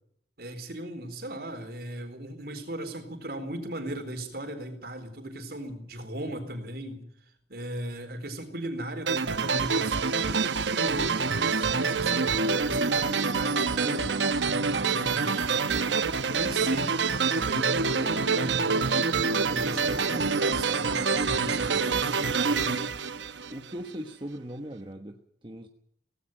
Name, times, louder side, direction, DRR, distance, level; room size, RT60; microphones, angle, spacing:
voice 1, 0.4-7.0 7.5-12.4 12.6-14.2 14.5-17.0 17.3-19.2 19.5-22.9, right 1 dB, 55° right, 7 dB, 4.1 m, -37 dB
sound 1, 9.1-23.9, right 4 dB, 80° right, 0.9 m, -26 dB
voice 2, 23.5-25.7, equal, 25° right, 5 dB, 1.2 m, -40 dB
18.0 x 16.5 x 9.1 m, 0.68 s
head